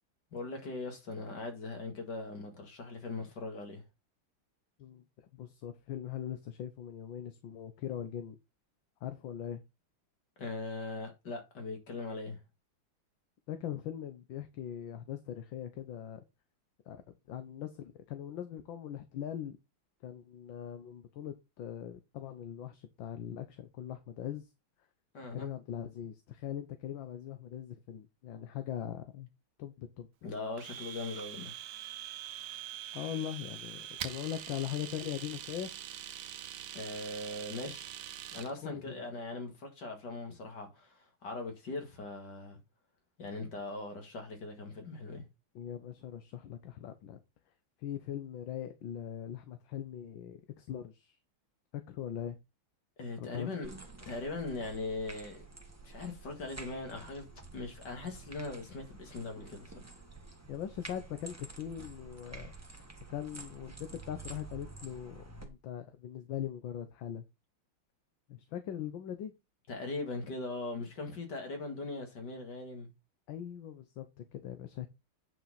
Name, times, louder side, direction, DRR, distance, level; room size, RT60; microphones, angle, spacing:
voice 1, 0.3-3.8 10.4-12.4 25.1-25.5 30.2-31.5 36.7-37.9 38.3-42.6 43.2-45.2 53.0-53.7 54.0-55.5 55.8-57.3 57.5-59.8 69.7-72.9, left 3 dB, 55° left, 2.7 m, -40 dB
voice 2, 4.8-8.4 9.0-9.6 13.5-16.2 16.9-17.0 17.3-19.6 20.0-24.5 25.3-29.3 29.6-30.1 32.9-35.7 37.6-37.7 38.6-39.1 45.5-47.2 47.8-51.2 51.7-52.4 53.2-53.5 60.5-62.5 63.1-67.2 68.3-69.3 73.3-74.9, left 10 dB, 70° left, 1.6 m, -41 dB
Domestic sounds home sounds, 30.6-38.5, right 11 dB, 65° right, 1.3 m, -44 dB
sound 1, 53.6-65.5, right 3 dB, 10° right, 1.2 m, -50 dB
9.2 x 6.0 x 4.1 m
omnidirectional pair, 2.3 m